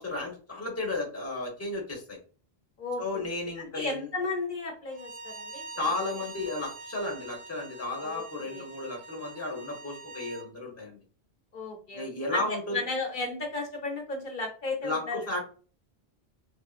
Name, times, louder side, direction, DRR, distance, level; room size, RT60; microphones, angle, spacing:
voice 1, 0.0-2.2 3.0-4.1 5.8-11.0 11.9-12.8 14.8-15.4, left 2 dB, 15° left, 1 dB, 0.9 m, -33 dB
voice 2, 2.8-3.3 3.7-5.9 7.9-8.6 11.5-12.4 12.7-15.3, left 3 dB, 55° left, 2 dB, 0.8 m, -34 dB
Bowed string instrument, 4.9-10.5, right 3 dB, 65° right, 0.7 m, -44 dB
3.1 x 2.7 x 2.4 m, 0.38 s
omnidirectional pair, 1.1 m